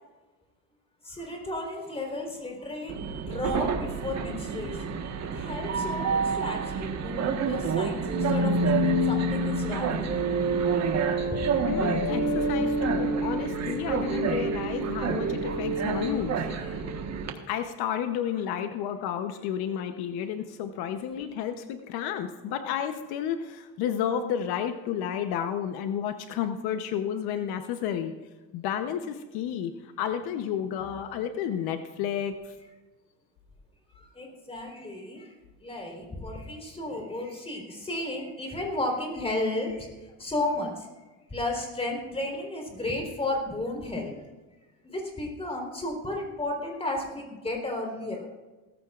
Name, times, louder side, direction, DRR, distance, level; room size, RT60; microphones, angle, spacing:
voice 1, 1.0-10.6 11.0-11.5 12.1-12.2 14.6-14.7 33.9-35.3 35.6-40.9 41.3-44.2 44.8-48.3, left 2 dB, 15° left, 1 dB, 3.9 m, -34 dB
Train, 2.9-17.3, right 6 dB, 45° right, 1.5 m, -30 dB
sound 1, 8.1-17.0, right 1 dB, 20° right, 4.2 m, -28 dB
voice 2, 11.6-16.8 17.5-28.1 28.5-32.5, left 9 dB, 80° left, 8 dB, 1.0 m, -31 dB
17.5 x 15.0 x 2.5 m, 1.2 s
cardioid pair, 120°, 37 cm